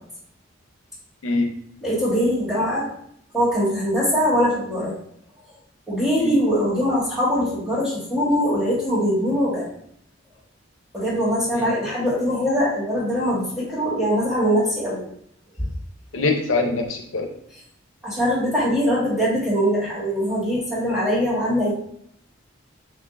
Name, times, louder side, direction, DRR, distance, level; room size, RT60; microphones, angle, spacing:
voice 1, 1.8-2.9 3.3-4.9 5.9-9.7 10.9-15.0 15.6-15.7 18.0-21.7, equal, ahead, -8 dB, 1.8 m, -22 dB
voice 2, 16.1-17.3, left 3 dB, 85° left, 3 dB, 0.6 m, -23 dB
7.2 x 2.5 x 2.5 m, 0.69 s
head